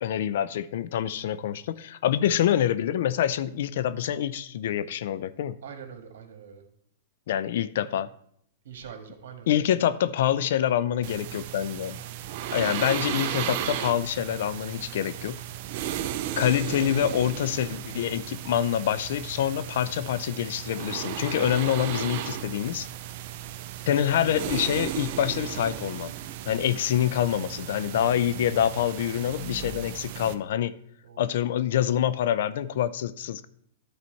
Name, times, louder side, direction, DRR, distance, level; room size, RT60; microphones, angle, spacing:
voice 1, 0.0-5.6 7.3-8.1 9.5-12.0 12.5-15.4 16.4-22.9 23.9-26.1 26.5-30.7 31.2-33.5, left 10 dB, 70° left, 16 dB, 0.5 m, -26 dB
voice 2, 5.6-6.6 8.6-9.6 27.9-28.1 31.0-31.2, right 7 dB, 75° right, 5 dB, 1.7 m, -44 dB
sound 1, 11.0-30.3, right 11 dB, 55° right, 0.6 m, -35 dB
11.0 x 4.2 x 4.5 m, 0.67 s
hypercardioid pair, 135°, 0 cm